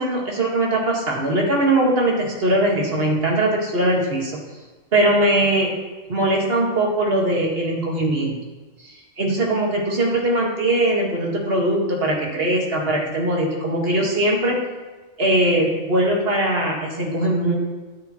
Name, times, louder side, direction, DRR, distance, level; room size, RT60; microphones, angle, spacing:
voice 1, 0.0-4.4 4.9-5.8 6.1-8.4 8.8-14.6 15.2-17.6, right 1 dB, 50° right, -2 dB, 1.9 m, -21 dB
13.5 x 6.9 x 3.0 m, 1.2 s
omnidirectional pair, 1.4 m